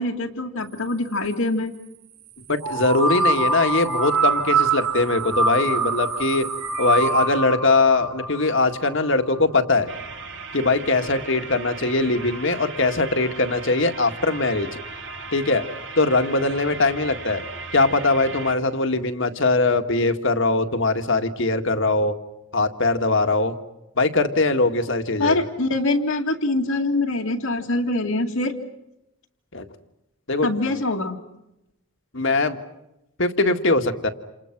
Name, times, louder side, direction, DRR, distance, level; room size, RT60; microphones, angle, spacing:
voice 1, 0.0-1.7 25.2-28.6 30.4-31.2, left 2 dB, 75° left, -1 dB, 2.2 m, -24 dB
voice 2, 2.5-6.5 6.8-9.9 10.5-14.7 15.3-15.6 16.0-17.4 17.7-22.1 22.5-23.6 24.0-25.4 29.5-29.7 30.3-30.5 32.1-32.6 33.2-34.1, left 3 dB, 55° left, 7 dB, 1.9 m, -21 dB
sound 1, 2.6-9.4, right 3 dB, 85° right, 2.6 m, -24 dB
sound 2, 9.9-18.6, right 4 dB, 55° right, 2.3 m, -37 dB
29.0 x 29.0 x 6.1 m, 0.88 s
head